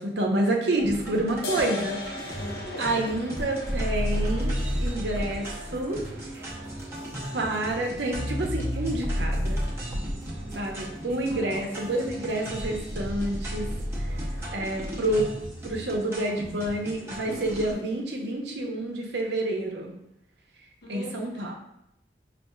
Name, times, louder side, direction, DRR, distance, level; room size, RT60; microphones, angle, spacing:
voice 1, 0.0-2.0 2.8-6.0 7.3-9.6 10.5-13.7 14.1-14.2 14.5-15.3 15.6-19.9 20.9-21.5, right 1 dB, 85° right, 1 dB, 0.7 m, -28 dB
sound 1, 0.8-17.7, equal, 15° right, 0.6 m, -33 dB
sound 2, 1.4-8.4, left 3 dB, 65° left, 0.5 m, -40 dB
voice 2, 2.4-2.9 11.3-11.7 20.8-21.5, left 2 dB, 85° left, -3 dB, 1.1 m, -40 dB
5.6 x 2.5 x 2.2 m, 0.81 s
head